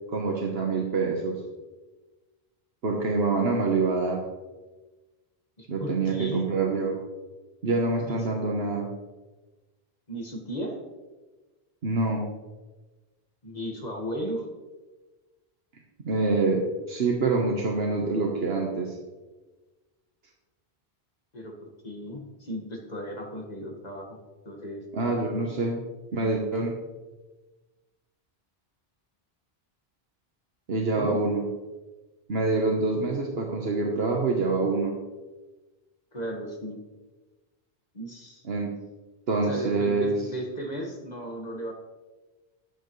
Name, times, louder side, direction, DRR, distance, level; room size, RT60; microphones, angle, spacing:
voice 1, 0.1-1.3 2.8-4.2 5.7-7.0 7.6-8.9 11.8-12.3 16.0-18.9 24.9-25.8 26.1-26.8 30.7-31.4 32.3-34.9 38.5-38.7 39.3-40.2, right 3 dB, 75° right, 0 dB, 1.4 m, -26 dB
voice 2, 5.6-6.4 8.1-8.2 10.1-10.7 13.4-14.5 21.3-24.2 24.5-24.8 30.9-31.2 36.1-36.8 37.9-38.4 39.4-41.7, equal, 40° left, 1 dB, 1.8 m, -35 dB
12.5 x 9.1 x 3.2 m, 1.2 s
omnidirectional pair, 1.1 m